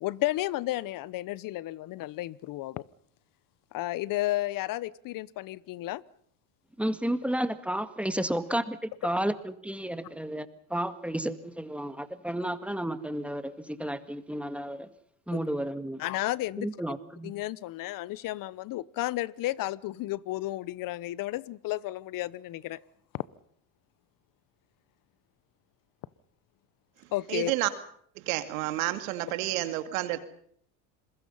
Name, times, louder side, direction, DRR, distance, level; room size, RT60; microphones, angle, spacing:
voice 1, 0.0-2.8 3.7-6.0 15.3-15.4 16.0-16.7 17.2-22.8 23.1-23.3 27.1-27.5, left 16 dB, 55° left, 1.0 m, -32 dB
voice 2, 6.8-14.9 15.3-16.0 16.6-17.3, right 1 dB, 5° right, 1.9 m, -32 dB
voice 3, 27.3-27.7 28.2-30.2, right 15 dB, 90° right, 2.3 m, -30 dB
27.5 x 22.0 x 5.6 m
supercardioid pair, 100°, 39 cm